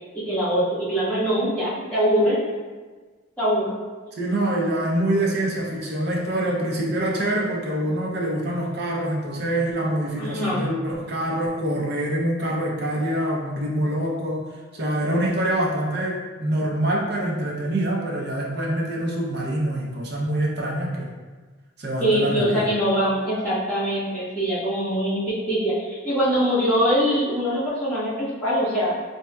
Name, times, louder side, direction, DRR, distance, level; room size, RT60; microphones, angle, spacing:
voice 1, 0.1-2.4 3.4-3.7 10.2-10.7 22.0-29.0, equal, 10° left, -13 dB, 1.3 m, -23 dB
voice 2, 4.1-14.4 14.7-21.1 21.8-22.7, right 1 dB, 55° right, -2 dB, 0.6 m, -25 dB
4.3 x 2.7 x 2.2 m, 1.4 s
head